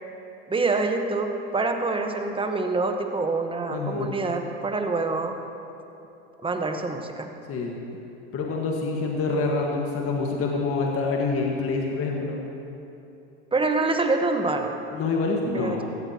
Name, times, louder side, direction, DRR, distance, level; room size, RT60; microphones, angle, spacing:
voice 1, 0.5-5.4 6.4-7.3 13.5-14.8 15.5-15.8, right 3 dB, 15° right, 5 dB, 1.2 m, -26 dB
voice 2, 3.7-4.1 7.5-7.7 8.3-12.4 14.9-15.8, left 3 dB, 45° left, -1 dB, 1.7 m, -26 dB
16.5 x 14.0 x 3.0 m, 2.8 s
supercardioid pair, 95°, 32 cm